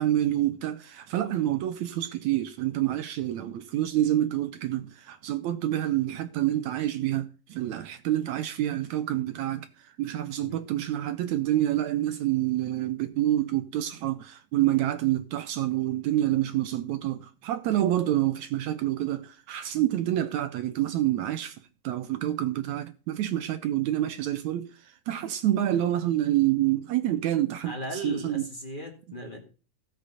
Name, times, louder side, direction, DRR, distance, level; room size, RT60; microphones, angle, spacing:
voice 1, 0.0-9.7 10.0-21.6 21.8-24.7 25.1-27.7 28.0-28.4, right 13 dB, 75° right, 1.8 m, -27 dB
voice 2, 27.6-29.4, equal, 20° left, 1.6 m, -37 dB
15.5 x 6.5 x 5.5 m
omnidirectional pair, 3.8 m